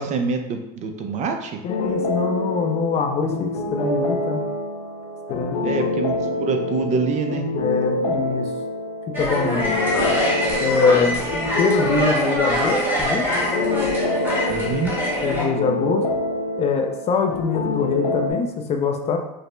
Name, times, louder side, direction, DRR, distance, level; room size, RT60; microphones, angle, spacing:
voice 1, 0.0-1.6 5.6-7.5 9.7-10.2 14.5-14.9, right 4 dB, 35° right, 5 dB, 0.5 m, -26 dB
voice 2, 1.6-4.4 5.3-5.6 7.6-8.5 9.2-9.7 10.6-11.2 11.5-13.3 15.2-16.1 16.6-19.2, left 5 dB, 30° left, 4 dB, 0.4 m, -23 dB
sound 1, 1.7-18.3, left 2 dB, 70° left, 0.9 m, -26 dB
sound 2, 9.1-15.5, equal, 10° right, 1.1 m, -24 dB
5.0 x 2.0 x 3.1 m, 0.90 s
supercardioid pair, 120°, 21 cm